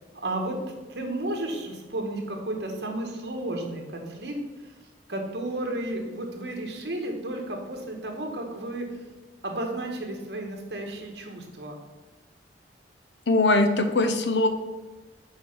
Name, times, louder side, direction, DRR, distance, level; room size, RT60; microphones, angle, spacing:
voice 1, 0.2-4.7 5.1-8.8 9.4-11.8, right 1 dB, 65° right, 2 dB, 1.5 m, -33 dB
voice 2, 13.3-14.5, left 2 dB, 75° left, 7 dB, 0.8 m, -21 dB
7.4 x 4.8 x 5.6 m, 1.2 s
head